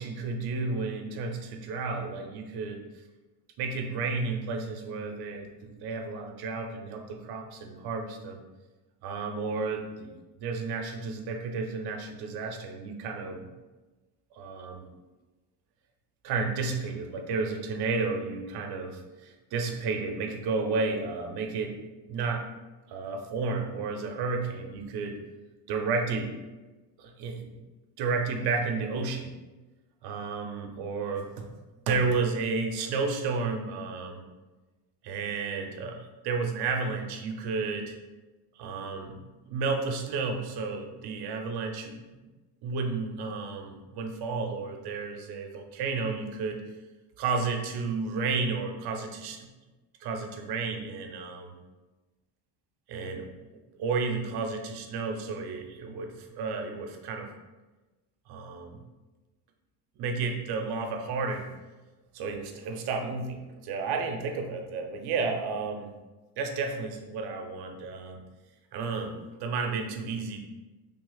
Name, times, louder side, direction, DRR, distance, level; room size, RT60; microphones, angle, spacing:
voice 1, 0.0-2.8 3.6-8.4 9.0-10.1 10.4-13.5 14.4-14.9 16.2-21.8 22.1-22.5 22.9-25.2 25.7-26.3 27.0-27.6 28.0-29.3 30.0-31.5 31.9-34.2 35.0-38.0 38.6-42.2 42.6-46.6 47.2-49.5 50.0-51.6 52.9-53.3 53.8-57.3 58.3-58.8 60.0-61.5 62.1-65.9 66.4-68.2 68.7-70.4, right 4 dB, 60° right, 4 dB, 0.7 m, -32 dB
3.3 x 2.3 x 3.9 m, 1.2 s
cardioid pair, 105°, 44 cm